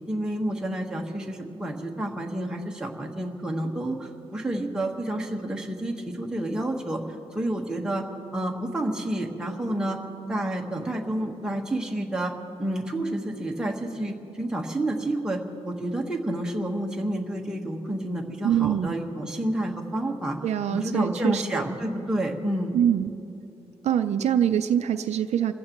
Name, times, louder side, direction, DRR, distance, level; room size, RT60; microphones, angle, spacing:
voice 1, 0.1-7.0 7.3-8.1 8.3-10.0 10.3-12.3 12.6-15.4 15.6-20.4 20.7-22.7, right 1 dB, 5° right, -1 dB, 1.4 m, -29 dB
voice 2, 18.4-18.9 20.4-21.6 22.7-23.1 23.8-25.5, right 9 dB, 75° right, 8 dB, 0.5 m, -24 dB
28.5 x 15.0 x 3.1 m, 2.7 s
wide cardioid pair, 160°, 12 cm